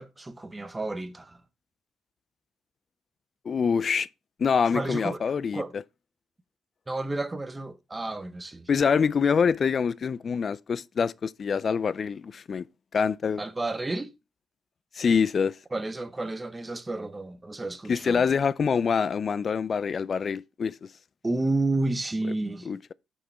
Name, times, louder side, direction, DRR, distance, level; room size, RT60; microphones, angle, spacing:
voice 1, 0.0-1.4 4.7-5.2 5.5-5.7 6.9-8.7 13.4-14.1 15.7-18.2 21.2-22.7, right 2 dB, 15° right, 0.8 m, -31 dB
voice 2, 3.5-4.1 4.4-5.6 8.7-12.7 12.9-13.4 14.9-15.6 17.9-20.8 22.7-22.9, left 6 dB, 40° left, 0.3 m, -25 dB
6.6 x 5.4 x 4.2 m
cardioid pair, 105°, 0 cm